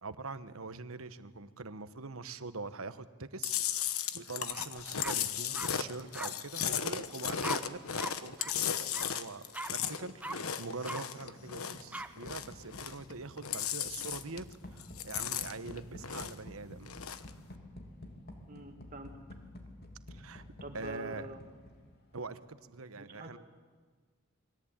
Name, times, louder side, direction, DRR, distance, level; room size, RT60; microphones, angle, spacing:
voice 1, 0.0-7.8 8.2-9.4 9.7-17.0 20.1-20.4 20.7-21.3 22.1-23.4, right 3 dB, 80° right, 12 dB, 1.2 m, -44 dB
Chewing mastication, 3.4-11.9 12.2-13.1 13.4-14.5 14.8-16.5 16.8-17.3, left 8 dB, 90° left, 1.2 m, -35 dB
sound 1, 4.5-4.7 5.0-5.7 6.1-6.3 7.4-7.6 8.0-8.1 8.4-8.5 8.9-9.1 9.5-9.7 10.2-10.4 10.8-11.0 11.9-12.1, right 2 dB, 5° right, 0.8 m, -39 dB
sound 2, 11.2-22.1, left 1 dB, 50° left, 3.2 m, -51 dB
voice 2, 18.5-19.2 20.6-21.4 23.0-23.4, right 1 dB, 40° right, 4 dB, 2.1 m, -46 dB
29.0 x 22.0 x 8.9 m, 1.5 s
head